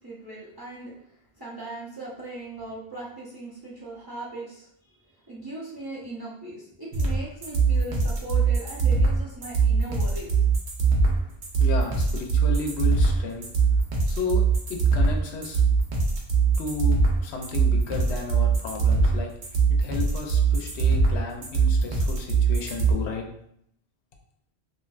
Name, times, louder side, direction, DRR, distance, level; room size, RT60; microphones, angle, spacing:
voice 1, 0.0-10.5, right 2 dB, 25° right, -7 dB, 0.6 m, -39 dB
sound 1, 6.9-22.9, right 5 dB, 85° right, 1.0 m, -22 dB
voice 2, 11.6-13.5 14.1-14.4 14.7-15.6 16.6-23.3, left 4 dB, 85° left, 3 dB, 0.9 m, -33 dB
3.1 x 2.6 x 2.3 m, 0.70 s
omnidirectional pair, 1.1 m